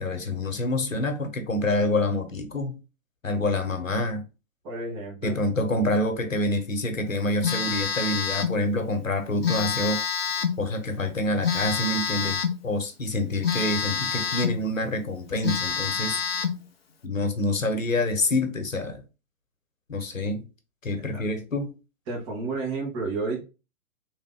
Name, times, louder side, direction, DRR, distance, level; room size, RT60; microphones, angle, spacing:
voice 1, 0.0-2.8 3.2-4.2 5.2-10.0 10.6-16.2 17.0-19.0 19.9-20.5 20.8-21.7, left 2 dB, 70° left, 1.2 m, -27 dB
voice 2, 4.6-5.4 21.1-21.2 22.1-23.4, right 3 dB, 20° right, 1.5 m, -31 dB
Telephone, 7.4-8.6 9.4-10.6 11.4-12.6 13.4-14.6 15.1-15.2 15.4-16.6, left 6 dB, 45° left, 0.7 m, -27 dB
4.0 x 3.2 x 3.7 m
figure-of-eight pair, 130°, 41 cm